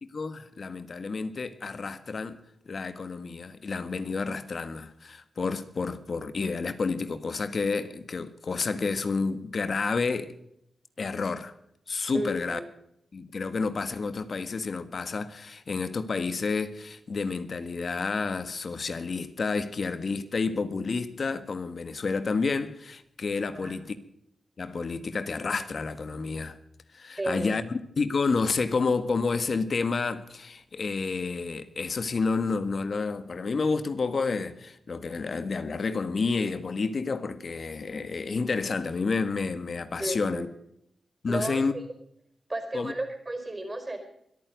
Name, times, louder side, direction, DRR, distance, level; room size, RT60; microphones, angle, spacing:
voice 1, 0.0-2.4 2.6-10.3 11.0-11.6 11.9-12.6 13.1-24.0 24.6-26.6 26.9-40.5 41.2-41.7 42.7-42.9, left 4 dB, 55° left, 1.6 m, -30 dB
voice 2, 12.1-12.6 23.5-23.8 27.2-27.6 40.0-40.5 41.3-41.6 42.5-44.0, right 1 dB, 25° right, 4.6 m, -33 dB
24.5 x 9.3 x 5.2 m
cardioid pair, 85°, 0 cm